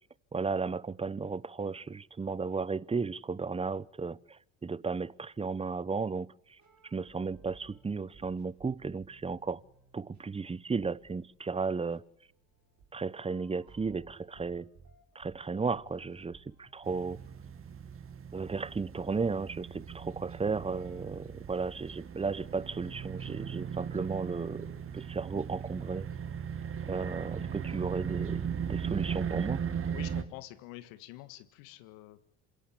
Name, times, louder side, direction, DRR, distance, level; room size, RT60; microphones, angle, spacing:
voice 1, 0.3-6.3 6.9-9.6 9.9-12.0 12.9-14.7 15.1-17.2 18.3-26.1 26.9-28.4 28.7-29.6, right 4 dB, 20° right, 0.8 m, -34 dB
sound 1, 6.4-21.6, right 4 dB, 65° right, 6.8 m, -61 dB
sound 2, 16.8-30.2, right 7 dB, 45° right, 2.1 m, -38 dB
voice 2, 29.9-32.2, left 16 dB, 80° left, 1.7 m, -47 dB
27.5 x 17.0 x 8.5 m
hypercardioid pair, 70°, 31 cm